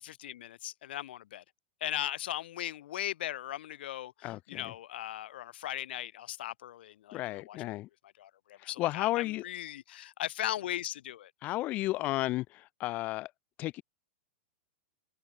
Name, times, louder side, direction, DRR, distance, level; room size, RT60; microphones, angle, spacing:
voice 1, 0.0-1.4 1.8-7.6 8.0-11.3, left 13 dB, 65° left, 2.2 m, -38 dB
voice 2, 4.2-4.6 7.1-7.9 8.8-9.4 11.4-13.3 13.6-13.8, left 17 dB, 25° left, 0.4 m, -33 dB
supercardioid pair, 165°, 6 cm